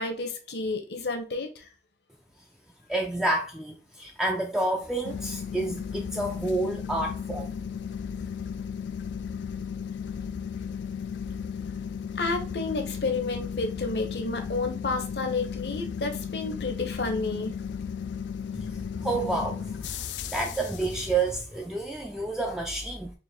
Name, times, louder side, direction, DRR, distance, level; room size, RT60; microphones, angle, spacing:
voice 1, 0.0-1.7 12.2-17.6, left 3 dB, 70° left, 0.8 m, -31 dB
voice 2, 2.9-7.6 18.5-23.1, right 2 dB, 5° right, 0.3 m, -29 dB
sound 1, 5.0-21.4, left 7 dB, 85° left, 0.3 m, -35 dB
4.0 x 2.5 x 3.5 m
head